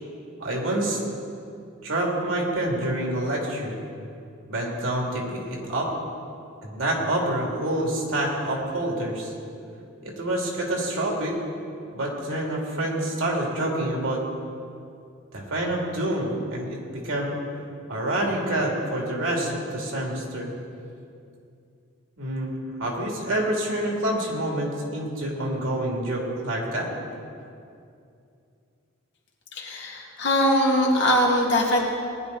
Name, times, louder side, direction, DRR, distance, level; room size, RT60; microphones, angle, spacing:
voice 1, 0.4-1.0 1.8-3.8 4.5-5.9 6.6-9.3 10.0-11.4 11.9-14.2 15.3-17.3 17.9-20.5 22.2-22.5 22.8-26.9, right 1 dB, 85° right, -1 dB, 2.8 m, -27 dB
voice 2, 29.5-31.8, left 1 dB, 55° left, -2 dB, 2.3 m, -21 dB
19.5 x 10.5 x 4.1 m, 2.5 s
head